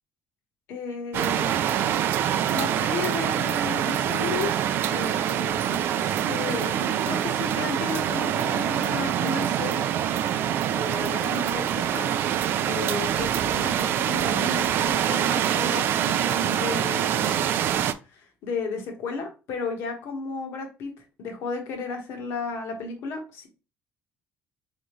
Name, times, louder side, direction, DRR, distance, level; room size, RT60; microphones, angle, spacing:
voice 1, 0.7-1.7 2.5-9.9 10.7-12.1 12.7-17.5 18.1-20.9 21.2-23.5, left 4 dB, 65° left, 3 dB, 1.3 m, -33 dB
sound 1, 1.1-17.9, right 10 dB, 55° right, 0.3 m, -25 dB
3.9 x 3.5 x 3.1 m, 0.32 s
cardioid pair, 140°, 5 cm